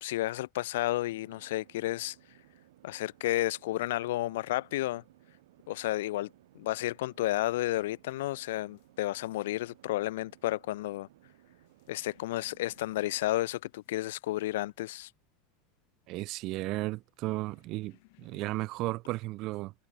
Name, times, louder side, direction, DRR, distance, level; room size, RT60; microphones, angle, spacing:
voice 1, 0.0-2.2 2.8-5.0 5.7-6.3 6.6-11.1 11.9-15.1, left 16 dB, 75° left, 0.5 m, -32 dB
sound 1, 1.1-13.3, right 15 dB, 85° right, 3.0 m, -61 dB
sound 2, 8.1-18.7, left 28 dB, 50° left, 5.9 m, -67 dB
voice 2, 16.1-19.7, right 19 dB, 35° right, 0.4 m, -34 dB
supercardioid pair, 175°, 0 cm